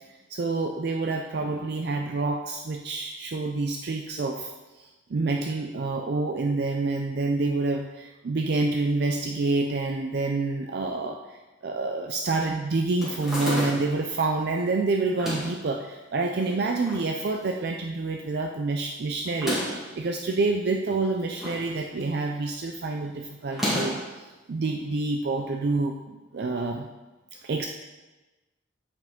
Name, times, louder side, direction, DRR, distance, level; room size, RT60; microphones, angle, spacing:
voice 1, 0.3-26.9 27.4-27.7, right 3 dB, 55° right, 2 dB, 0.4 m, -28 dB
sound 1, 13.0-14.0 15.1-15.6 16.4-17.1 17.4-17.5 17.7-17.8 19.3-19.9 20.9-21.7 22.0-22.3 23.5-24.1, left 1 dB, ahead, 1.7 m, -31 dB
7.9 x 4.8 x 3.6 m, 1.1 s
head